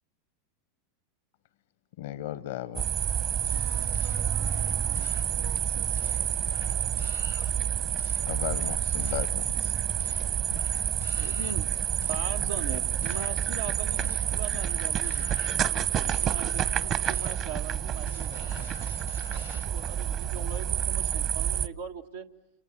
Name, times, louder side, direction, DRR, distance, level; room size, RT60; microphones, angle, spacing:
voice 1, 2.0-2.9 8.3-9.7, left 12 dB, 75° left, 0.9 m, -36 dB
sound 1, 2.8-21.7, right 9 dB, 45° right, 1.2 m, -29 dB
sound 2, 3.4-19.7, left 10 dB, 90° left, 1.2 m, -48 dB
voice 2, 3.5-6.5, right 7 dB, 65° right, 1.3 m, -49 dB
voice 3, 11.2-22.2, right 6 dB, 90° right, 1.7 m, -41 dB
29.5 x 27.5 x 7.3 m
hypercardioid pair, 105°, 0 cm